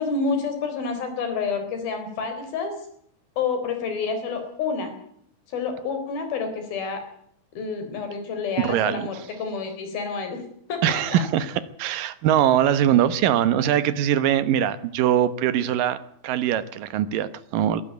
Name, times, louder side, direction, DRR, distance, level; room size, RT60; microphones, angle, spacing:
voice 1, 0.0-2.7 3.4-4.9 5.5-7.0 7.6-10.4 10.7-11.2, left 5 dB, 65° left, 7 dB, 5.7 m, -28 dB
voice 2, 8.6-9.1 10.8-16.0 16.2-17.8, right 10 dB, 70° right, 14 dB, 2.5 m, -22 dB
21.5 x 13.5 x 9.3 m, 0.69 s
omnidirectional pair, 4.6 m